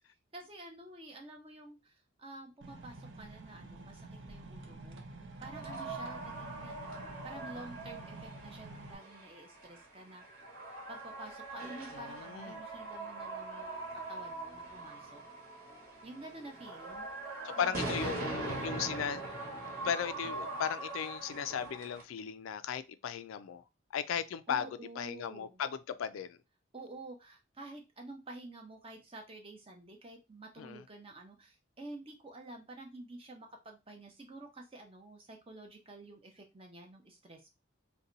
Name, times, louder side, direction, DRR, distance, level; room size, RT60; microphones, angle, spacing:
voice 1, 0.3-5.0 5.4-6.9 7.2-10.2 10.9-15.2 16.0-17.1 17.5-18.7 24.5-25.6 26.7-37.5, right 2 dB, 25° right, 0.7 m, -49 dB
sound 1, 2.6-8.9, right 2 dB, 65° right, 0.5 m, -49 dB
sound 2, 5.4-22.0, right 2 dB, 45° right, 1.2 m, -42 dB
voice 2, 11.9-12.6 17.4-19.2 19.8-23.6 23.9-24.7 25.0-26.4 30.6-30.8, left 8 dB, 80° left, 0.3 m, -36 dB
2.7 x 2.2 x 3.8 m
head